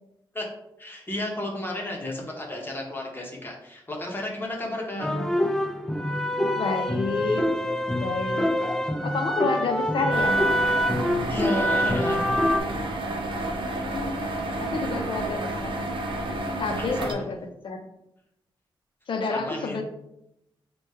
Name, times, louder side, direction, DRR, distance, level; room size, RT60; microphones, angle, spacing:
voice 1, 0.8-5.1 11.3-12.2 15.9-16.2 16.8-17.3 19.3-19.8, left 1 dB, 25° left, -1 dB, 0.9 m, -32 dB
voice 2, 4.9-5.4 6.5-7.4 8.0-8.5 9.0-10.4 13.6-14.3 14.6-15.8 16.6-17.9 19.1-19.8, left 3 dB, 70° left, 5 dB, 0.5 m, -29 dB
sound 1, 5.0-12.6, equal, 5° left, 0.3 m, -25 dB
sound 2, 10.1-17.1, right 1 dB, 70° right, 0.6 m, -30 dB
3.2 x 2.2 x 4.3 m, 0.82 s
cardioid pair, 85°, 9 cm